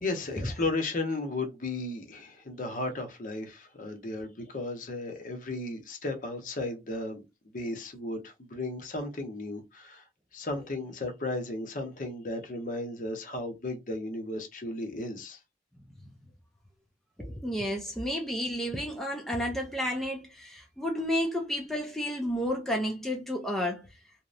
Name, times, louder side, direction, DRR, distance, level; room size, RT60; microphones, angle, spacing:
voice 1, 0.0-7.2 7.5-10.0 10.3-15.4, left 2 dB, 45° left, 0.7 m, -35 dB
voice 2, 17.2-23.8, equal, ahead, 0.3 m, -31 dB
2.7 x 2.0 x 2.4 m
head